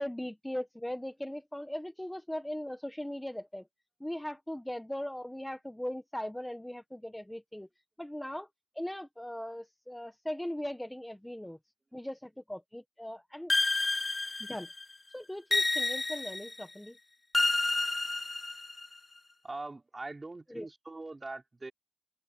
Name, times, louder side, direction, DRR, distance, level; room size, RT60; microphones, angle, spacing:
voice 1, 0.0-3.7 4.0-7.7 8.0-8.5 8.7-11.6 11.9-13.5 14.4-14.7 15.1-17.0 20.5-20.7, left 1 dB, 5° left, 1.5 m, -39 dB
sound 1, 13.5-14.8 15.5-16.6 17.3-18.9, left 2 dB, 20° left, 0.4 m, -30 dB
voice 2, 19.4-21.7, right 2 dB, 20° right, 4.7 m, -42 dB
open air
cardioid pair, 95°, 0 cm